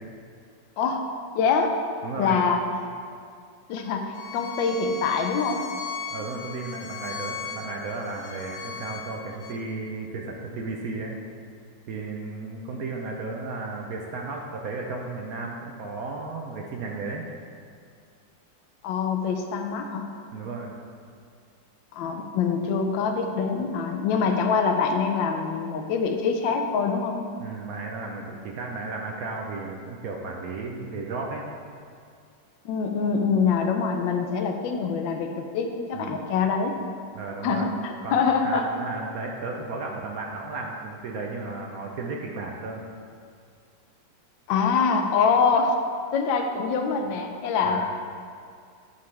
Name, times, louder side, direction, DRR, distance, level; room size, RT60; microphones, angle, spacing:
voice 1, 1.3-1.8 2.2-2.6 3.7-5.7 18.8-20.1 21.9-27.2 32.6-36.8 37.4-38.6 44.5-45.8 46.1-47.9, left 5 dB, 90° left, 4 dB, 1.4 m, -24 dB
voice 2, 2.0-2.4 6.1-11.2 11.9-17.2 20.3-20.7 27.4-31.4 35.9-36.3 37.1-37.7 38.0-42.8 47.6-47.8, right 3 dB, 65° right, 0 dB, 0.9 m, -34 dB
Bowed string instrument, 4.1-9.6, left 6 dB, 70° left, 0.7 m, -38 dB
9.9 x 5.6 x 3.2 m, 2.2 s
omnidirectional pair, 2.0 m